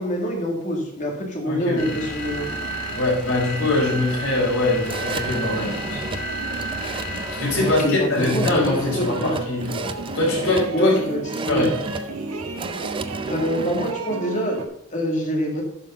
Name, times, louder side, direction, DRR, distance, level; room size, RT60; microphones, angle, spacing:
voice 1, 0.0-2.4 7.6-9.3 10.7-11.7 13.3-15.6, equal, 35° left, 1 dB, 2.3 m, -26 dB
voice 2, 1.4-1.8 2.9-6.0 7.3-9.8 10.1-11.0 11.4-11.7, left 2 dB, 60° left, -4 dB, 4.4 m, -22 dB
sound 1, 1.7-14.7, right 2 dB, 75° right, 1.2 m, -34 dB
sound 2, 1.8-8.0, right 1 dB, 80° left, 1.6 m, -32 dB
sound 3, 2.6-13.9, right 4 dB, 25° right, 0.5 m, -34 dB
11.5 x 5.5 x 5.5 m, 0.73 s
head